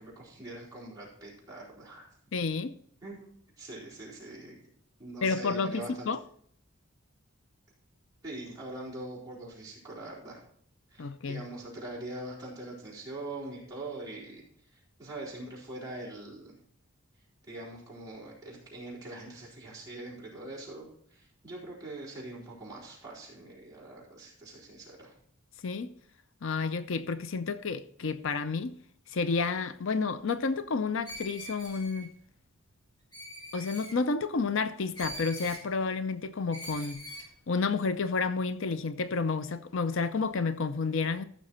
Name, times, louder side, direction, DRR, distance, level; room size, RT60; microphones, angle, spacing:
voice 1, 0.0-2.1 3.0-3.3 3.6-4.6 5.0-6.1 8.2-10.4 10.9-14.4 14.7-16.6 17.5-25.1, right 2 dB, 15° right, 4.4 m, -43 dB
voice 2, 2.3-2.7 5.2-6.2 11.0-11.5 25.6-25.9 26.4-28.8 29.1-32.1 33.5-37.1 37.5-41.3, left 4 dB, 65° left, 0.5 m, -30 dB
Screech, 31.0-32.1 33.1-34.0 34.9-35.6 36.5-37.3, equal, 20° left, 2.9 m, -43 dB
14.5 x 6.4 x 4.3 m
head